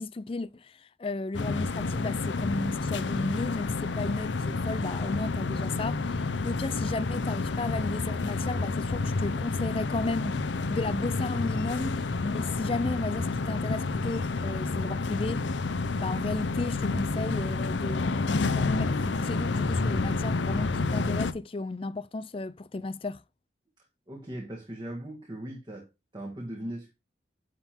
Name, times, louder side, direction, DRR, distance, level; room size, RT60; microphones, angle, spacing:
voice 1, 0.0-10.4 10.7-15.4 16.0-23.2, left 3 dB, 30° left, 0.4 m, -34 dB
sound 1, 1.3-21.3, left 3 dB, 85° left, 0.7 m, -29 dB
voice 2, 24.1-25.9 26.1-26.9, right 1 dB, 25° right, 1.5 m, -38 dB
9.7 x 3.7 x 4.4 m
head